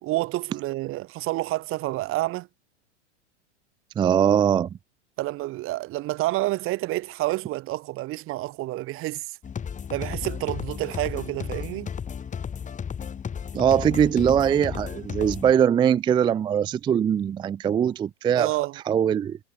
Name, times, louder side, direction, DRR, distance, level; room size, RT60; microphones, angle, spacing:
voice 1, 0.0-2.5 5.2-9.4 9.9-11.9 18.4-18.8, right 18 dB, 35° right, 1.5 m, -29 dB
voice 2, 4.0-4.7 13.5-18.5 18.9-19.4, right 8 dB, 15° right, 0.4 m, -21 dB
sound 1, 9.4-15.5, left 7 dB, 20° left, 6.2 m, -34 dB
hypercardioid pair, 115°, 35 cm